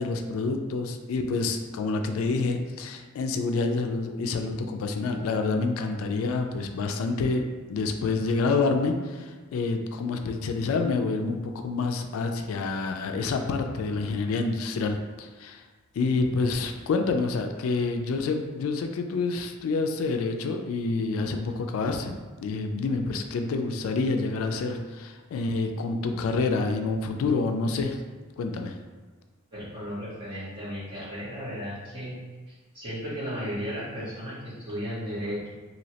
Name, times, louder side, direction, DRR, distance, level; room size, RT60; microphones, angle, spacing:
voice 1, 0.0-15.6 15.9-28.0 28.4-28.7, left 3 dB, 80° left, 6 dB, 0.3 m, -28 dB
voice 2, 29.5-35.5, equal, 25° right, -10 dB, 1.3 m, -35 dB
3.0 x 2.7 x 2.8 m, 1.3 s
head